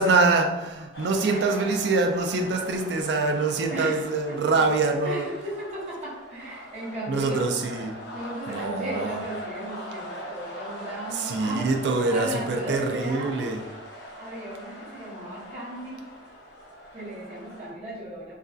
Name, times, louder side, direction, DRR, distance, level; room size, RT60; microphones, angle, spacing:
voice 1, 0.0-5.3 7.1-8.0 8.5-9.2 11.1-13.6, right 3 dB, 65° right, 4 dB, 0.4 m, -24 dB
sound 1, 0.9-17.7, equal, 65° left, 0.7 m, -41 dB
voice 2, 1.3-1.6 3.7-4.6 5.0-7.6 8.1-13.6 14.2-16.1 16.9-18.4, right 1 dB, 35° right, -7 dB, 0.7 m, -36 dB
3.2 x 2.6 x 2.3 m, 1.1 s
head